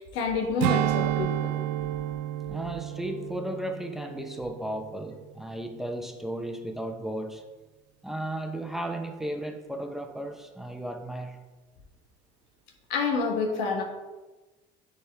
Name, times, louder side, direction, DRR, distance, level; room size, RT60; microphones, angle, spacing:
voice 1, 0.0-1.5 12.9-13.8, left 4 dB, 85° left, 2 dB, 1.3 m, -28 dB
Strum, 0.6-5.3 5.7-5.9, right 13 dB, 85° right, 0.4 m, -31 dB
voice 2, 2.5-7.5 8.0-11.4, right 1 dB, ahead, 4 dB, 1.0 m, -35 dB
10.0 x 4.3 x 3.5 m, 1.2 s
supercardioid pair, 90°, 19 cm